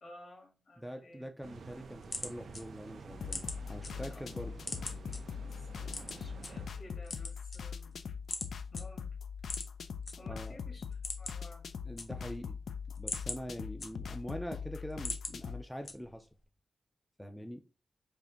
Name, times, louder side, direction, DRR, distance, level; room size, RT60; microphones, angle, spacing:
voice 1, 0.0-1.3 3.9-4.5 5.4-8.0 8.7-9.1 10.2-11.6, left 1 dB, 60° left, 1.6 m, -54 dB
voice 2, 0.8-4.6 10.3-10.6 11.9-12.6 13.0-16.3 17.2-17.6, equal, ahead, 0.4 m, -44 dB
sound 1, 1.4-6.9, right 5 dB, 90° right, 0.3 m, -51 dB
sound 2, 2.0-3.9 4.3-5.2 5.9-6.5 7.0-7.9 8.3-8.5 8.7-8.8 9.4-10.1 10.5-10.6 10.9-11.5 11.8-12.5 12.8-14.3 14.7-15.3 15.8-16.3, left 3 dB, 45° left, 0.7 m, -41 dB
sound 3, 3.1-15.6, left 6 dB, 90° left, 0.3 m, -42 dB
3.5 x 2.5 x 3.7 m
wide cardioid pair, 145°, 0 cm